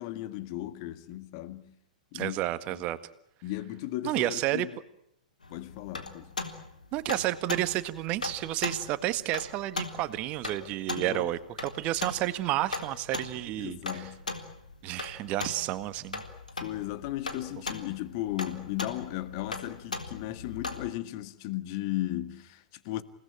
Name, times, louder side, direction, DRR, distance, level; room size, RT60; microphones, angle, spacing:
voice 1, 0.0-1.7 2.1-2.4 2.7-2.8 3.4-4.7 5.5-6.3 10.9-11.3 13.6-14.2 16.6-23.0, left 15 dB, 40° left, 1.9 m, -36 dB
voice 2, 2.1-3.0 4.0-4.7 6.9-14.1 14.8-16.2, right 15 dB, 35° right, 1.7 m, -31 dB
sound 1, 5.4-20.9, left 3 dB, 80° left, 3.7 m, -39 dB
29.5 x 19.0 x 9.0 m
figure-of-eight pair, 105°, 4 cm